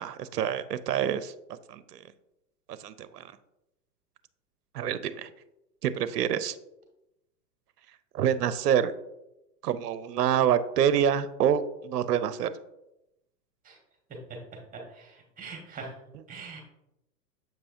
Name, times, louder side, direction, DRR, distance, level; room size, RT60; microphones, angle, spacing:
voice 1, 0.0-1.3 1.7-2.0 2.7-3.2 4.7-5.3 5.8-6.6 8.1-8.9 9.6-12.5, right 9 dB, 70° right, 13 dB, 0.6 m, -26 dB
voice 2, 14.1-15.9 16.3-16.6, right 3 dB, 15° right, 0 dB, 1.6 m, -42 dB
7.5 x 5.4 x 2.6 m, 0.89 s
figure-of-eight pair, 105°, 50 cm